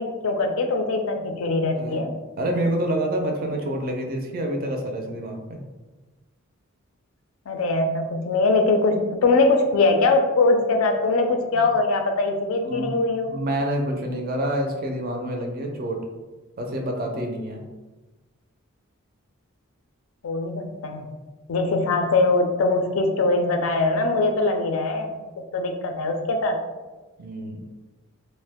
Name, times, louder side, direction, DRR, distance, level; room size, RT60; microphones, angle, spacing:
voice 1, 0.0-2.1 7.5-13.3 20.2-21.1 21.5-25.2 25.5-26.6, left 3 dB, 70° left, 5 dB, 0.4 m, -22 dB
voice 2, 2.4-5.6 11.5-11.7 12.6-12.9 13.3-16.0 16.6-17.6 27.2-27.6, right 1 dB, 45° right, 2 dB, 0.4 m, -27 dB
2.6 x 2.1 x 3.4 m, 1.2 s
head